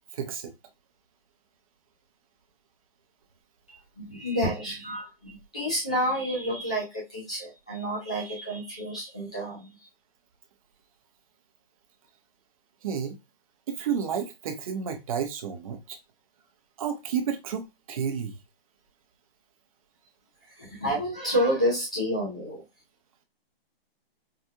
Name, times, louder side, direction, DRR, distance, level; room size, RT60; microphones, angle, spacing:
voice 1, 0.1-0.5 12.8-13.2 13.7-16.0 16.8-18.4, right 7 dB, 35° right, 0.8 m, -31 dB
voice 2, 3.7-9.9 20.4-22.6, equal, 5° left, 0.3 m, -29 dB
4.9 x 2.3 x 2.7 m
hypercardioid pair, 160°, 31 cm